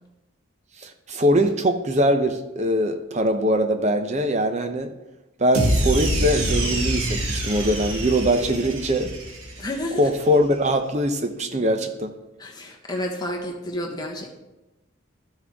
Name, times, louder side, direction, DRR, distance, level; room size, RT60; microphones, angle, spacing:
voice 1, 0.8-4.9 5.4-9.1 10.0-12.1, equal, 35° right, 7 dB, 0.7 m, -22 dB
sound 1, 5.5-9.9, right 1 dB, 85° right, 1.8 m, -25 dB
voice 2, 9.6-10.0 12.4-14.3, left 1 dB, 20° left, 1 dB, 1.1 m, -30 dB
12.5 x 6.1 x 3.5 m, 1.0 s
head